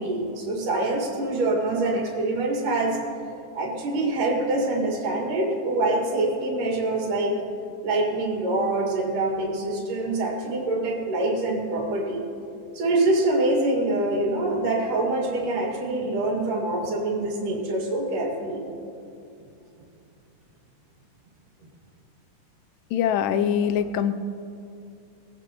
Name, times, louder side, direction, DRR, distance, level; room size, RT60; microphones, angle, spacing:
voice 1, 0.0-3.0 3.5-7.5 7.8-12.2 12.7-18.6, right 2 dB, 75° right, -1 dB, 3.7 m, -25 dB
voice 2, 22.9-24.2, left 8 dB, 90° left, 11 dB, 2.3 m, -23 dB
22.0 x 18.0 x 3.0 m, 2.6 s
omnidirectional pair, 3.8 m